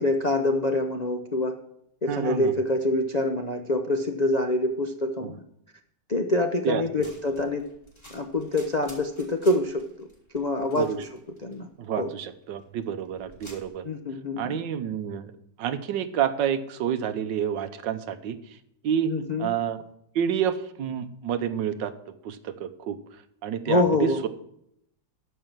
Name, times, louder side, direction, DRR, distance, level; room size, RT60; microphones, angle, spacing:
voice 1, 0.0-1.6 2.0-5.4 6.1-7.7 8.1-10.1 10.3-11.1 11.4-11.7 12.0-12.1 13.8-14.6 19.1-19.5 23.7-24.2, left 2 dB, 50° left, 4 dB, 0.4 m, -26 dB
voice 2, 2.1-2.5 5.2-5.3 6.6-6.9 10.8-11.0 11.8-13.8 14.4-15.3 15.6-18.6 18.8-19.1 19.4-19.8 20.1-21.9 22.2-23.0 23.4-24.3, right 9 dB, 85° right, 11 dB, 1.5 m, -29 dB
sound 1, 7.0-13.7, equal, 15° left, 3.5 m, -52 dB
13.0 x 5.6 x 7.5 m, 0.75 s
omnidirectional pair, 1.9 m